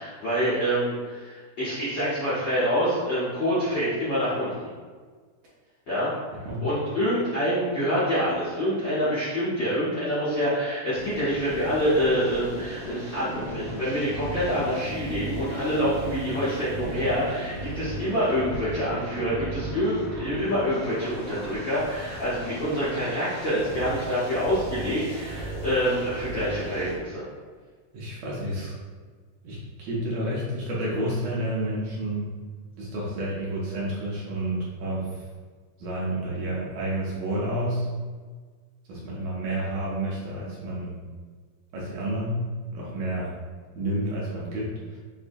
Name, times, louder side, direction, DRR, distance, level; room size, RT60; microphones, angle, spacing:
voice 1, 0.0-4.7 5.9-6.1 6.6-27.2, equal, 60° left, -11 dB, 1.2 m, -26 dB
sound 1, 11.0-27.0, right 1 dB, 45° right, 1.9 m, -36 dB
voice 2, 27.9-28.7 29.4-32.3 32.8-35.2 35.8-37.9 38.9-41.0 41.7-42.4 42.7-43.3 43.8-45.0, right 1 dB, 70° right, -6 dB, 1.8 m, -30 dB
6.5 x 2.7 x 2.6 m, 1.5 s
omnidirectional pair, 3.5 m